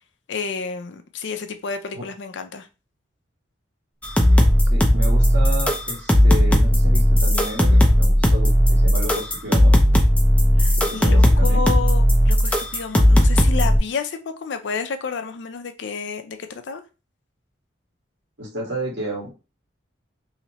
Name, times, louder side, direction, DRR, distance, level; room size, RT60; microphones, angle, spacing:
voice 1, 0.3-2.7 10.6-16.8, left 5 dB, 65° left, 0.4 m, -30 dB
sound 1, 4.0-13.8, equal, 5° left, 0.5 m, -16 dB
voice 2, 4.7-9.7 10.8-11.6 18.4-19.3, right 1 dB, 70° right, 1.7 m, -32 dB
3.1 x 2.9 x 2.9 m
head